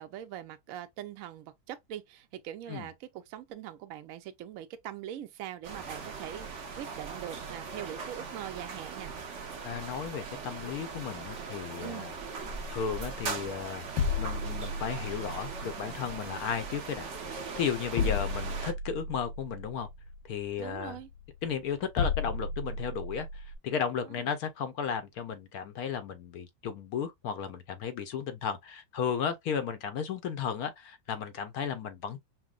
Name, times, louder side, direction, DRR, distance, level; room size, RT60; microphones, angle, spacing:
voice 1, 0.0-9.1 11.8-12.1 17.9-18.2 20.6-21.1 24.0-24.1, right 11 dB, 80° right, 0.7 m, -42 dB
sound 1, 5.6-18.7, right 5 dB, 50° right, 0.9 m, -40 dB
voice 2, 9.6-12.1 12.7-13.9 14.2-19.9 20.3-21.0 21.4-32.2, left 7 dB, 70° left, 0.9 m, -34 dB
sound 2, 12.4-23.6, left 4 dB, 90° left, 1.4 m, -35 dB
5.8 x 2.1 x 2.3 m
omnidirectional pair, 2.0 m